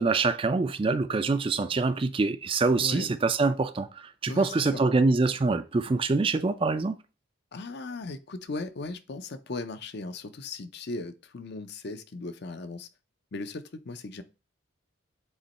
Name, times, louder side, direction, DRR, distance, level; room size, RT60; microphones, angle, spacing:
voice 1, 0.0-6.9, right 3 dB, 25° right, 0.3 m, -25 dB
voice 2, 2.8-3.1 4.3-4.8 7.5-12.9 13.3-14.2, left 3 dB, 50° left, 0.6 m, -37 dB
8.0 x 3.0 x 4.2 m
head